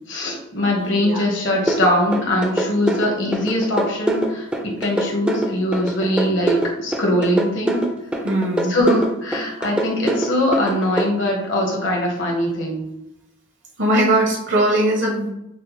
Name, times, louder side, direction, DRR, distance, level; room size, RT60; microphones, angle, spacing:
voice 1, 0.0-4.5 4.8-7.8 8.7-12.9, left 1 dB, 70° left, -1 dB, 1.1 m, -21 dB
sound 1, 1.7-11.1, right 1 dB, 5° right, 0.3 m, -23 dB
voice 2, 8.2-8.8 13.8-15.3, right 1 dB, 70° right, -2 dB, 0.8 m, -19 dB
5.9 x 2.1 x 3.0 m, 0.85 s
head